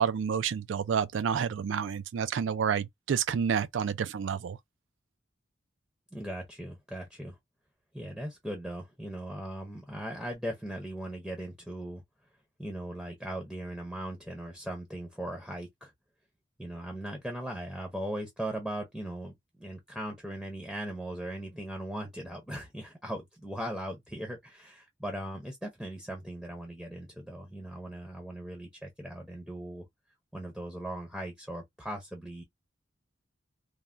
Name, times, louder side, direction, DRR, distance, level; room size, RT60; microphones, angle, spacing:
voice 1, 0.0-4.6, right 7 dB, 80° right, 0.4 m, -29 dB
voice 2, 6.1-7.3 7.9-12.0 12.6-15.9 16.6-29.9 30.3-32.4, right 1 dB, ahead, 0.6 m, -39 dB
3.3 x 2.2 x 2.5 m
head